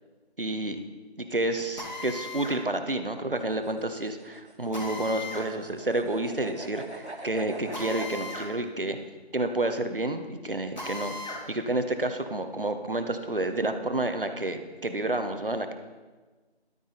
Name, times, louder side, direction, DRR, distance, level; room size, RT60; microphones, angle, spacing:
voice 1, 0.4-0.8 1.2-9.0 9.3-15.7, right 2 dB, 55° right, 7 dB, 1.2 m, -30 dB
Drill, 1.8-2.6 4.7-5.5 7.7-8.5 8.9-9.0 10.8-11.4, left 2 dB, 40° left, 2.5 m, -37 dB
sound 1, 3.4-8.2, right 2 dB, 85° right, 2.4 m, -43 dB
13.5 x 11.5 x 4.0 m, 1.3 s
figure-of-eight pair, 180°, 33 cm